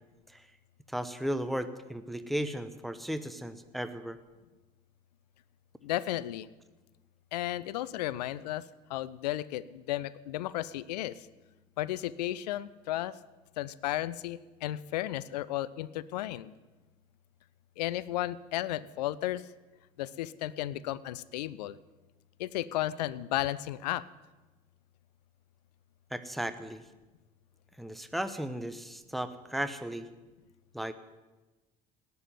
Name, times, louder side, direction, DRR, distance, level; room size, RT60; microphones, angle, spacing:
voice 1, 0.9-4.2 26.1-26.8 27.8-30.1 30.7-30.9, right 1 dB, ahead, 10 dB, 0.9 m, -35 dB
voice 2, 5.8-6.5 7.3-8.6 8.9-11.2 11.8-13.2 13.6-16.5 17.8-19.5 20.0-21.8 22.4-24.1, left 14 dB, 85° left, 18 dB, 0.6 m, -34 dB
18.0 x 7.0 x 9.2 m, 1.2 s
hypercardioid pair, 75°, 21 cm